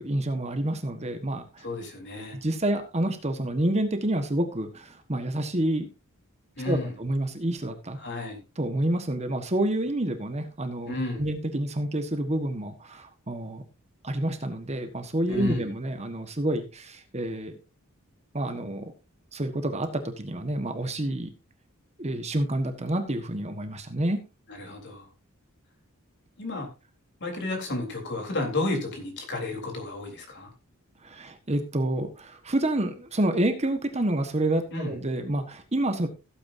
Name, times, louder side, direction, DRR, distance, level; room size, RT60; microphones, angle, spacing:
voice 1, 0.0-1.6 2.3-5.9 6.6-8.0 8.6-13.6 14.0-17.6 18.3-18.9 19.3-21.3 22.0-24.2 31.0-36.1, right 1 dB, 30° right, 1.4 m, -28 dB
voice 2, 1.6-2.4 6.6-6.9 8.0-8.4 10.9-11.2 15.3-15.7 24.5-25.1 26.4-26.7 27.2-30.5 34.7-35.0, left 2 dB, 55° left, 3.8 m, -32 dB
16.0 x 8.8 x 2.7 m
head